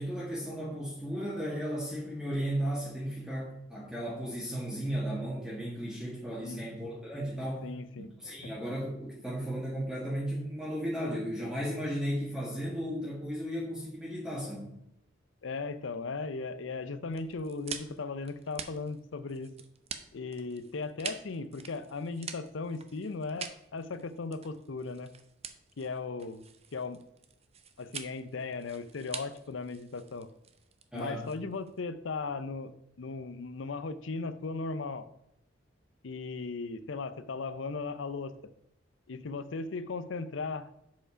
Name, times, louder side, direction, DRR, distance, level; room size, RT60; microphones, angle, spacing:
voice 1, 0.0-7.7 8.2-14.8 30.9-31.2, equal, 5° right, -5 dB, 1.5 m, -35 dB
voice 2, 7.6-8.5 15.4-19.5 20.1-25.1 25.8-26.4 26.7-27.0 27.8-30.3 30.9-32.7 33.0-35.1 36.0-38.3 39.1-40.7, left 4 dB, 80° left, 13 dB, 0.6 m, -37 dB
sound 1, 17.1-31.8, right 7 dB, 35° right, 0.6 m, -45 dB
7.2 x 5.2 x 4.9 m, 0.81 s
head